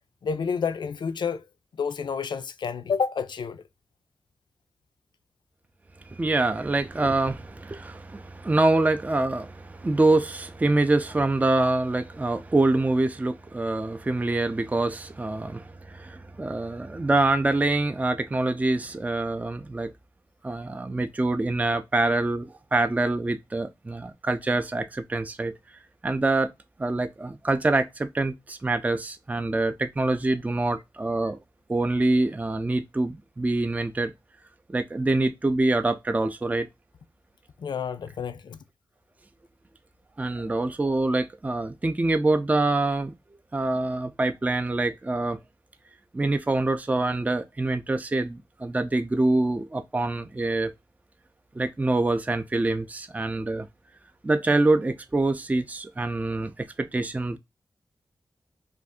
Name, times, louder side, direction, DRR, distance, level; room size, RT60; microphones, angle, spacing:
voice 1, 0.2-1.4 1.7-3.6 37.6-38.6, left 6 dB, 75° left, 0.4 m, -29 dB
voice 2, 6.1-19.9 20.4-25.5 26.0-26.5 26.8-31.4 31.7-34.1 34.7-36.7 40.2-43.1 43.5-45.4 46.1-50.7 51.6-53.7 54.2-57.4, right 2 dB, 20° right, 0.4 m, -25 dB
2.6 x 2.4 x 3.4 m
cardioid pair, 55°, 8 cm